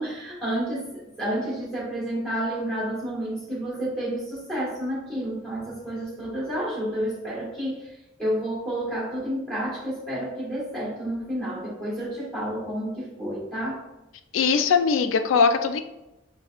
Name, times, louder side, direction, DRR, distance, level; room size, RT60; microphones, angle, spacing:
voice 1, 0.0-13.8, right 1 dB, 5° left, -7 dB, 1.3 m, -30 dB
voice 2, 14.3-15.8, left 5 dB, 70° left, 8 dB, 0.3 m, -20 dB
5.1 x 2.2 x 2.3 m, 0.94 s
head